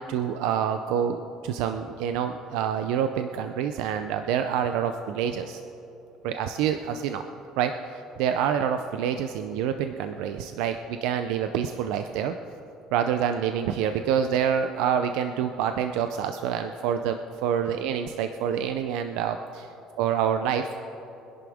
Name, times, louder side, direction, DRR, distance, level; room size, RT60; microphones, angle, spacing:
voice 1, 0.0-5.6 6.2-7.2 7.6-12.3 12.9-19.7 20.0-20.7, right 8 dB, 75° right, 7 dB, 0.6 m, -27 dB
23.5 x 11.0 x 3.6 m, 2.9 s
cardioid pair, 165°, 0 cm